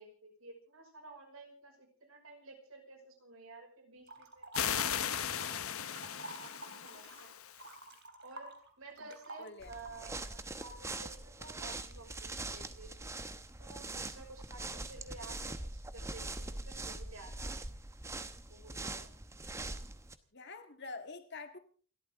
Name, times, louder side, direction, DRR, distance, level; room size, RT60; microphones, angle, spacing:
voice 1, 0.0-5.9 6.4-7.3 8.2-13.1 13.6-17.7 18.5-19.1, right 3 dB, 70° right, 5.7 m, -53 dB
sound 1, 4.1-5.6 5.8-10.3, right 2 dB, 50° right, 3.1 m, -49 dB
sound 2, 4.5-7.8, left 9 dB, 75° left, 1.1 m, -37 dB
voice 2, 9.4-9.7 20.3-21.6, left 3 dB, 50° left, 1.9 m, -46 dB
sound 3, 9.6-20.2, right 2 dB, 15° right, 0.9 m, -43 dB
29.0 x 13.0 x 3.6 m
head